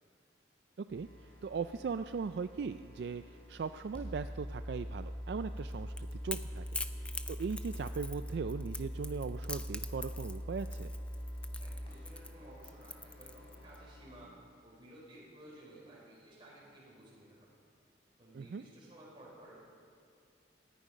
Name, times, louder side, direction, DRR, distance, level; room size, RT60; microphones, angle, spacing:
sound 1, 0.9-14.2, equal, 30° left, 3.5 m, -44 dB
voice 1, 1.4-6.7 7.0-10.9 18.3-18.6, right 5 dB, 65° right, 10 dB, 0.3 m, -39 dB
Crackle / Crack, 5.6-13.8, left 3 dB, 5° left, 0.4 m, -44 dB
voice 2, 11.6-14.3 14.6-17.6 18.2-19.7, right 1 dB, 25° right, -5 dB, 5.3 m, -55 dB
19.5 x 13.5 x 5.2 m, 2.4 s
head